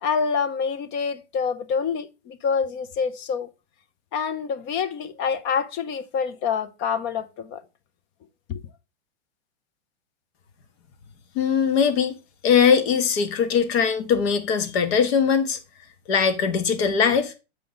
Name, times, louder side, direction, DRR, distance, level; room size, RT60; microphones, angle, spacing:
voice 1, 0.0-3.5 4.1-7.6 8.5-8.6, left 6 dB, 35° left, 0.7 m, -26 dB
voice 2, 11.3-12.1 12.4-15.6 16.1-17.3, left 6 dB, 60° left, 1.4 m, -20 dB
7.6 x 5.1 x 3.9 m
hypercardioid pair, 125°, 35 cm